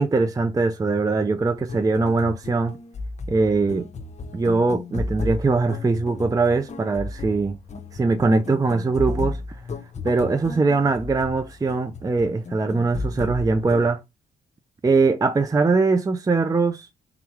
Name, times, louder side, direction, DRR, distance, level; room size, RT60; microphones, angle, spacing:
voice 1, 0.0-2.7 3.3-3.9 4.3-7.6 7.9-9.4 10.0-14.0 14.8-16.9, right 3 dB, 20° right, 0.4 m, -21 dB
sound 1, 1.6-13.9, left 3 dB, 35° left, 0.7 m, -34 dB
3.5 x 3.4 x 3.0 m
supercardioid pair, 65°, 19 cm